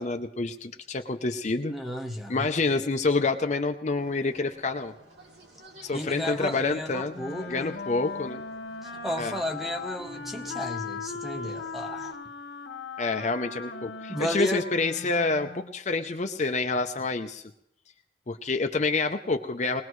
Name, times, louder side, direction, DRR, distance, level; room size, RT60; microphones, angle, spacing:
voice 1, 0.0-1.7 2.3-4.9 5.8-7.1 7.5-8.4 9.2-9.3 13.0-17.4 18.3-19.8, left 3 dB, 35° left, 5 dB, 0.6 m, -28 dB
voice 2, 1.7-2.5 5.9-7.8 8.8-12.2 14.1-14.6, equal, ahead, 4 dB, 0.9 m, -33 dB
sound 1, 4.0-12.1, right 1 dB, 65° right, 2.9 m, -51 dB
Wind instrument woodwind instrument, 7.1-15.8, left 4 dB, 80° left, 1.3 m, -38 dB
21.5 x 19.0 x 3.1 m, 0.75 s
head